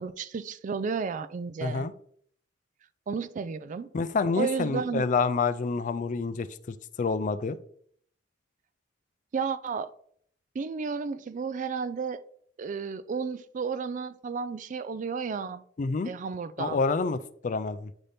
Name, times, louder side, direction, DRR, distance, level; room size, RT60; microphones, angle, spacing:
voice 1, 0.0-1.9 3.1-3.9 4.4-5.1 9.3-9.9 10.5-12.2 12.6-15.6 16.1-16.8, right 5 dB, 45° right, 0.4 m, -32 dB
voice 2, 1.6-1.9 3.9-6.5 7.0-7.6 15.8-16.1 16.6-17.9, left 4 dB, 45° left, 0.4 m, -28 dB
8.9 x 4.1 x 3.4 m
head